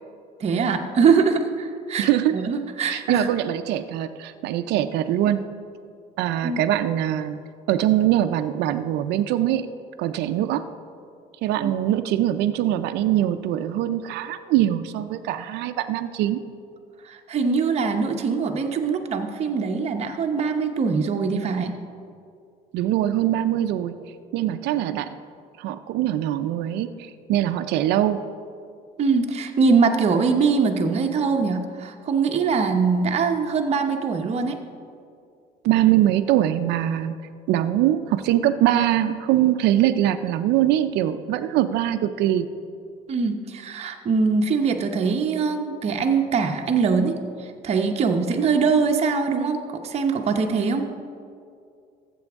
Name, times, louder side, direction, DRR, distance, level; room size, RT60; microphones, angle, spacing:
voice 1, 0.4-3.3 6.4-6.6 11.6-11.7 17.0-21.7 29.0-34.6 43.1-50.9, right 5 dB, 40° right, 3 dB, 0.8 m, -22 dB
voice 2, 2.0-2.4 2.8-5.5 6.2-7.4 7.7-9.7 10.0-10.6 11.4-16.4 22.7-23.9 24.3-25.2 25.6-28.2 35.6-37.2 37.5-42.5, right 12 dB, 85° right, 10 dB, 0.5 m, -22 dB
13.0 x 7.7 x 3.5 m, 2.3 s
cardioid pair, 110°, 17 cm